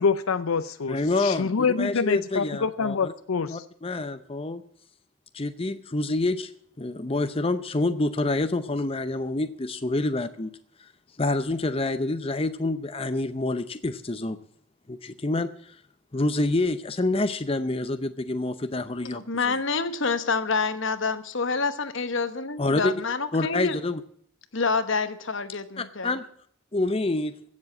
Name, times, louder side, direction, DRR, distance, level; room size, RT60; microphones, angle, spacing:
voice 1, 0.0-3.6, left 5 dB, 75° left, 13 dB, 0.6 m, -26 dB
voice 2, 0.9-3.1 3.5-4.6 5.3-6.5 6.8-10.5 10.8-10.9 11.2-14.4 14.9-15.8 16.1-19.6 22.6-22.9 23.3-24.0 25.8-26.2 26.7-27.3, left 2 dB, 25° left, 10 dB, 0.7 m, -27 dB
voice 3, 19.0-23.8 24.5-26.1, left 4 dB, 60° left, 11 dB, 1.2 m, -27 dB
15.5 x 7.4 x 8.5 m, 0.63 s
head